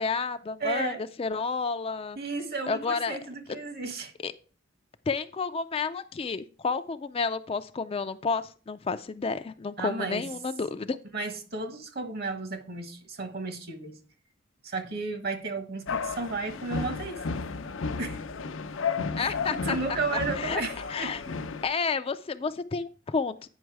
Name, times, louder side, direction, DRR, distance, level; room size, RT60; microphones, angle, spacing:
voice 1, 0.0-0.9 1.2-2.2 2.7-3.2 4.2-4.3 5.1-11.0 19.2-19.8 20.4-20.6 20.9-21.2 21.6-23.5, left 4 dB, 30° left, 11 dB, 0.4 m, -30 dB
voice 2, 0.6-1.0 2.1-4.1 9.8-10.2 11.1-14.0 14.6-17.2 18.0-18.2 19.2-21.1, right 3 dB, 55° right, 8 dB, 1.4 m, -33 dB
sound 1, 15.9-21.6, left 5 dB, 85° left, 0.6 m, -33 dB
9.1 x 5.5 x 4.6 m, 0.39 s
head